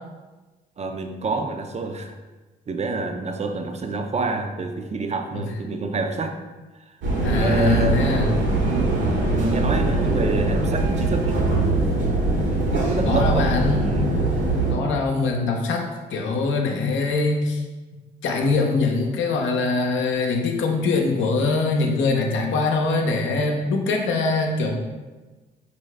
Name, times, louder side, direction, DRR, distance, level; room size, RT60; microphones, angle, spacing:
voice 1, 0.8-2.1 2.7-6.4 6.7-7.0 7.2-8.1 8.6-8.9 9.3-11.5 12.7-14.1, right 3 dB, 30° right, 5 dB, 0.5 m, -27 dB
sound 1, 7.0-14.7, right 2 dB, 65° right, 1.1 m, -22 dB
voice 2, 7.2-8.3 13.0-13.8 14.7-17.6 18.2-24.7, left 3 dB, 65° left, 1 dB, 0.7 m, -23 dB
4.6 x 2.7 x 3.2 m, 1.2 s
hypercardioid pair, 45°, 21 cm